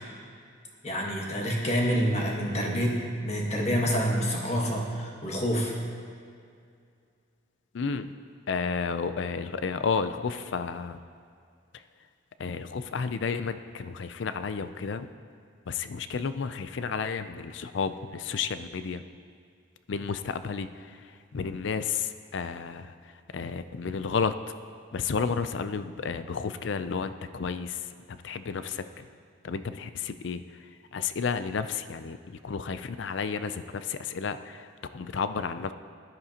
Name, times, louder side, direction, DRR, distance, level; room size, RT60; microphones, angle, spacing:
voice 1, 0.8-5.7, equal, 35° left, -1 dB, 1.4 m, -27 dB
voice 2, 7.7-8.1 8.5-11.0 12.4-15.1 15.7-19.0 19.9-20.7 21.3-22.9 23.3-24.3 24.9-27.8 28.1-29.1 29.4-30.4 30.9-34.6 34.9-35.7, left 5 dB, 65° left, 11 dB, 0.4 m, -31 dB
15.5 x 10.5 x 2.9 m, 2.3 s
head